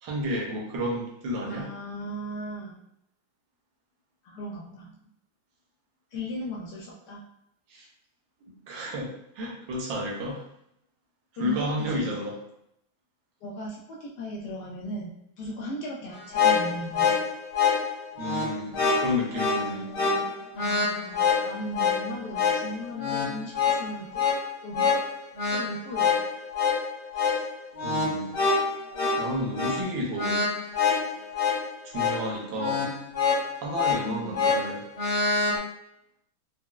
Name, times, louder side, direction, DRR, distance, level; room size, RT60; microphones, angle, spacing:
voice 1, 0.0-1.7 7.7-7.9 8.7-10.4 11.3-12.4 18.2-19.9 27.2-27.4 27.8-28.3 29.2-30.4 31.8-32.9 33.6-34.8, equal, 70° right, -2 dB, 1.4 m, -31 dB
voice 2, 1.4-2.8 4.2-5.1 6.1-7.2 11.4-12.1 13.4-17.1 19.5-24.2 24.6-24.9 25.5-26.2 34.0-34.5, equal, 80° left, -3 dB, 0.9 m, -37 dB
sound 1, 16.1-35.6, left 5 dB, 60° left, 1.7 m, -26 dB
4.1 x 2.1 x 2.3 m, 0.76 s
omnidirectional pair, 2.3 m